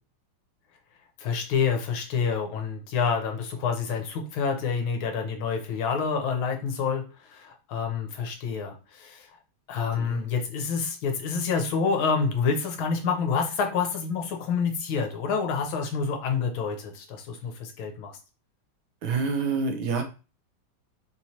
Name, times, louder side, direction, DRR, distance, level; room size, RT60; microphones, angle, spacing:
voice 1, 1.2-9.4 9.7-18.2, left 5 dB, 75° left, 4 dB, 1.5 m, -28 dB
voice 2, 10.0-10.3 19.0-20.0, right 4 dB, 70° right, 4 dB, 1.4 m, -27 dB
4.4 x 3.0 x 2.7 m, 0.33 s
omnidirectional pair, 2.4 m